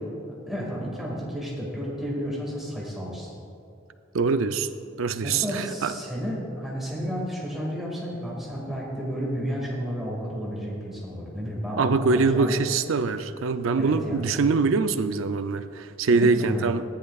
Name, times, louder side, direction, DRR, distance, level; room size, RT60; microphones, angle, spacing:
voice 1, 0.3-3.3 5.2-12.5 13.8-14.5 16.1-16.7, equal, ahead, -5 dB, 2.0 m, -32 dB
voice 2, 4.1-4.7 5.0-5.9 11.8-16.8, right 4 dB, 90° right, 10 dB, 0.5 m, -23 dB
14.5 x 10.0 x 2.4 m, 2.5 s
head